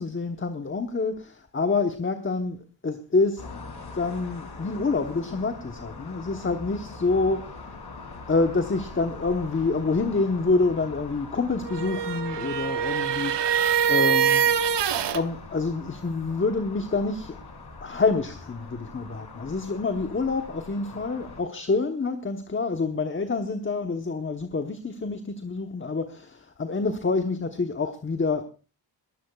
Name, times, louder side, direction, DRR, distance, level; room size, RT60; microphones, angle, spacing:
voice 1, 0.0-3.5 3.9-7.5 8.3-13.3 13.9-14.6 15.1-17.4 17.8-28.4, left 3 dB, 30° left, 7 dB, 1.1 m, -27 dB
sound 1, 3.4-21.4, left 3 dB, 65° left, 3.4 m, -42 dB
sound 2, 11.6-15.2, right 8 dB, 80° right, 1.0 m, -24 dB
22.5 x 14.5 x 2.4 m, 0.33 s
cardioid pair, 85°, 41 cm